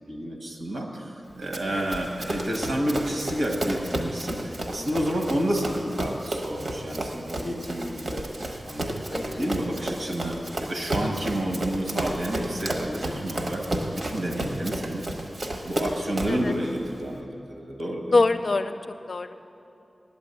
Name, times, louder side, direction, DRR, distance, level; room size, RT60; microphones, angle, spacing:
voice 1, 0.1-8.3 8.6-15.0 15.6-18.2, right 1 dB, 80° right, 1 dB, 1.6 m, -30 dB
Run, 1.5-16.5, right 1 dB, 65° right, 1.1 m, -32 dB
voice 2, 18.1-18.7 19.1-19.4, left 3 dB, 55° left, 9 dB, 0.4 m, -24 dB
9.3 x 8.5 x 8.3 m, 2.8 s
wide cardioid pair, 95°, 0 cm